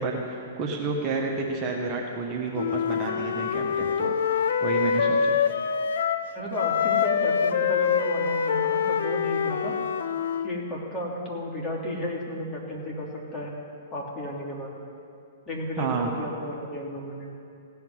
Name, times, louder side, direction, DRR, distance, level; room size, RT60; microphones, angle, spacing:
voice 1, 0.0-5.4 15.8-16.1, right 4 dB, 30° right, -1 dB, 1.5 m, -30 dB
Wind instrument woodwind instrument, 2.5-6.3 6.5-10.5, left 7 dB, 70° left, 0.7 m, -25 dB
voice 2, 6.3-9.7 10.4-13.5 13.9-14.8 15.5-17.3, equal, 20° left, -4 dB, 3.1 m, -33 dB
16.5 x 5.8 x 9.6 m, 2.5 s
hypercardioid pair, 125°, 0 cm